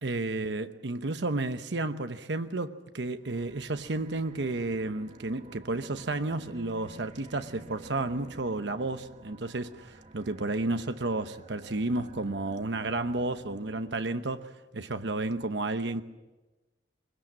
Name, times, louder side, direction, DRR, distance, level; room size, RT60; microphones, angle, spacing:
voice 1, 0.0-16.0, right 2 dB, 70° right, 0.9 m, -32 dB
sound 1, 3.2-14.0, right 2 dB, 35° right, 1.0 m, -50 dB
22.5 x 22.0 x 7.6 m
head